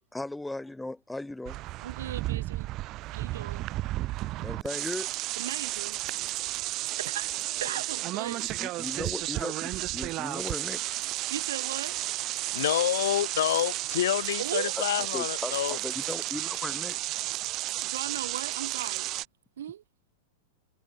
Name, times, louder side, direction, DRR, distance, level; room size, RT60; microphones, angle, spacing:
voice 1, 0.1-1.6 4.4-5.1 8.4-10.9 15.1-17.0, left 2 dB, 5° left, 1.5 m, -37 dB
sound 1, 1.4-19.2, right 17 dB, 40° right, 1.0 m, -33 dB
voice 2, 1.8-2.7 3.1-3.6 5.4-6.1 7.0-8.6 11.3-12.0 14.4-14.7 17.8-19.2 19.6-19.8, right 10 dB, 85° right, 3.6 m, -37 dB
voice 3, 12.5-15.8, left 12 dB, 75° left, 1.6 m, -28 dB
hypercardioid pair, 130°, 0 cm